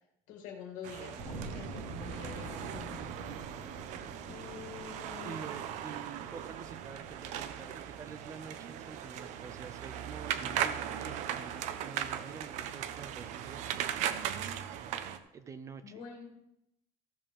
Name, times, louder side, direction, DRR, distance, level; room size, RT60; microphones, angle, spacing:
voice 1, 0.3-3.0 4.2-5.5 15.8-16.4, left 7 dB, 70° left, 2 dB, 2.3 m, -46 dB
sound 1, 0.8-15.2, right 10 dB, 55° right, 0.7 m, -38 dB
sound 2, 1.2-12.0, right 3 dB, 75° right, 1.8 m, -48 dB
voice 2, 5.2-13.9 15.3-16.0, right 6 dB, 20° right, 11 dB, 0.4 m, -48 dB
15.5 x 6.9 x 3.6 m, 0.82 s
cardioid pair, 180°, 14 cm